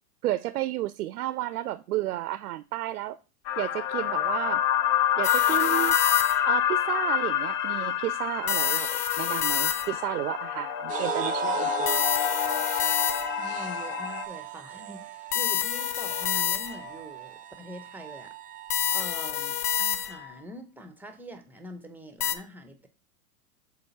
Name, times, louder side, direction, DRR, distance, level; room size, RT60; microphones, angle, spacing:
voice 1, 0.2-3.2 3.6-4.6 5.2-6.0 6.5-12.1, right 15 dB, 75° right, 0.6 m, -32 dB
sound 1, 3.5-14.2, left 10 dB, 40° left, 0.6 m, -27 dB
sound 2, 5.2-6.6 8.5-10.1 11.9-13.5 15.3-17.0 18.7-20.4 22.2-22.3, left 10 dB, 75° left, 0.8 m, -28 dB
sound 3, 10.9-19.3, right 11 dB, 20° right, 0.4 m, -37 dB
voice 2, 13.4-18.4 18.7-22.9, equal, 5° right, 0.9 m, -44 dB
6.6 x 4.1 x 4.1 m
hypercardioid pair, 100°, 45 cm